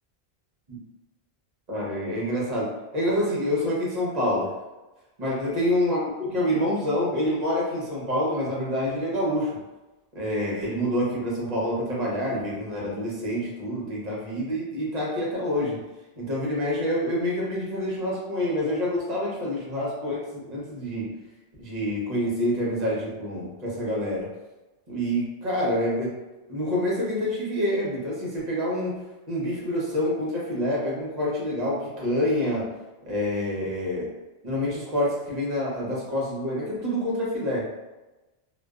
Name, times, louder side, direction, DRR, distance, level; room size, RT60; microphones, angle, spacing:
voice 1, 1.7-2.7 2.9-4.5 5.2-9.6 10.1-15.8 16.2-21.2 21.6-24.3 24.9-26.2 26.5-32.7 33.0-34.1 34.4-37.6, left 1 dB, 45° right, -5 dB, 0.9 m, -27 dB
2.4 x 2.2 x 2.3 m, 1.1 s
omnidirectional pair, 1.0 m